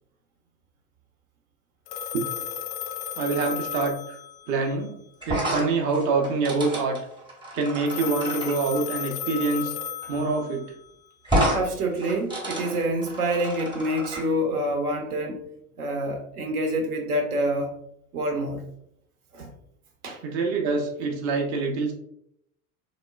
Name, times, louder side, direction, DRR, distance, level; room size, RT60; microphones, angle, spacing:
Telephone, 1.9-4.7 7.9-10.7, left 10 dB, 35° left, 0.4 m, -34 dB
voice 1, 3.2-4.2 4.5-5.0 5.3-7.0 7.5-9.7 10.1-10.7 20.2-21.9, right 4 dB, 35° right, 2 dB, 0.4 m, -25 dB
sound 1, 5.2-8.6 10.0-10.2 10.4-10.5 11.2-11.6 11.9-14.2, right 1 dB, 10° right, 0.7 m, -29 dB
voice 2, 11.5-15.5 15.8-17.7 18.1-18.6 19.3-19.5 20.0-20.2, right 1 dB, 75° right, 3 dB, 0.7 m, -27 dB
2.9 x 2.1 x 2.2 m, 0.74 s
figure-of-eight pair, 75°, 46 cm